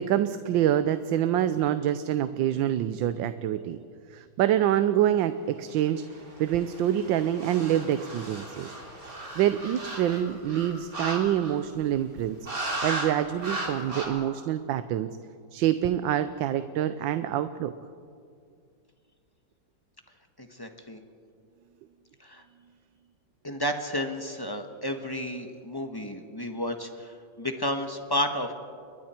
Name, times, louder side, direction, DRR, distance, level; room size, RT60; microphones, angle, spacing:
voice 1, 0.0-3.8 4.1-8.7 9.4-12.4 12.8-15.1 15.5-17.7, right 11 dB, 90° right, 11 dB, 1.4 m, -26 dB
sound 1, 6.1-11.8 12.4-13.1 13.4-14.1, right 2 dB, 50° right, 3.9 m, -36 dB
voice 2, 20.4-21.0 22.2-22.4 23.4-28.5, left 1 dB, 15° left, 5 dB, 1.2 m, -32 dB
29.5 x 22.5 x 4.4 m, 2.3 s
omnidirectional pair, 2.0 m